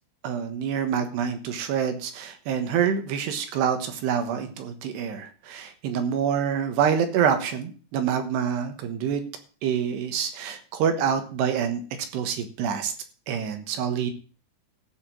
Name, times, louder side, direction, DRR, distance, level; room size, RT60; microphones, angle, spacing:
voice 1, 0.2-9.2 9.6-11.8 12.1-12.9 13.3-14.1, right 7 dB, 75° right, 7 dB, 3.3 m, -26 dB
14.5 x 5.2 x 7.6 m, 0.39 s
omnidirectional pair, 5.0 m